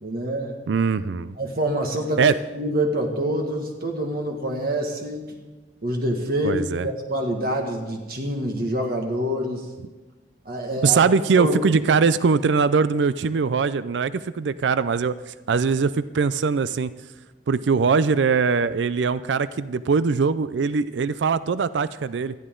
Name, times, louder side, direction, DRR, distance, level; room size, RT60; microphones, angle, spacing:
voice 1, 0.0-0.6 1.4-5.3 5.8-9.7 10.5-11.0 11.4-11.5 11.9-12.0, right 1 dB, 55° right, 2 dB, 1.8 m, -26 dB
voice 2, 0.7-1.3 2.2-2.4 6.4-6.9 10.8-16.9 17.5-22.3, right 5 dB, 85° right, 15 dB, 0.4 m, -21 dB
19.5 x 13.5 x 3.8 m, 1.2 s
head